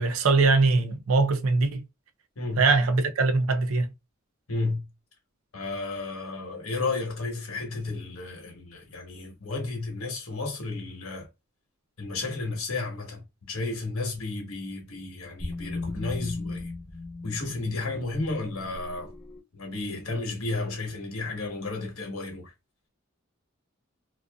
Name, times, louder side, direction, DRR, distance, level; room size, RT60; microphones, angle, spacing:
voice 1, 0.0-1.9 2.6-3.9, right 3 dB, 75° right, 0.5 m, -22 dB
voice 2, 2.4-2.7 4.5-4.8 5.5-11.3 12.0-16.7 17.2-19.1 19.5-22.5, left 3 dB, 85° left, 1.1 m, -32 dB
sound 1, 14.1-19.4, left 3 dB, 30° left, 0.8 m, -39 dB
2.5 x 2.5 x 2.2 m
head